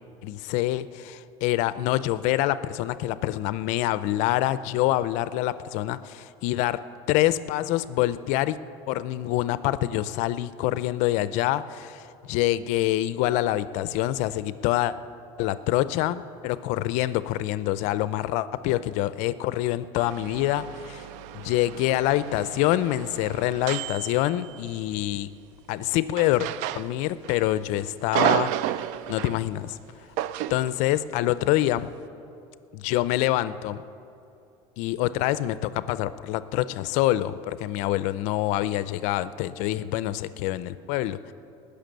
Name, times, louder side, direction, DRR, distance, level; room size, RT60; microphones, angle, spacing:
voice 1, 0.2-6.8 7.1-8.6 8.9-14.9 15.4-21.1 21.3-25.3 25.7-26.5 26.7-28.8 29.1-29.8 30.5-31.9 32.7-33.8 34.8-41.2, left 14 dB, 70° left, 15 dB, 0.5 m, -26 dB
sound 1, 20.0-24.9 26.1-27.4 27.7-29.4 30.2-30.7, right 13 dB, 70° right, 0.5 m, -32 dB
18.5 x 6.8 x 9.2 m, 2.7 s
cardioid pair, 135°, 13 cm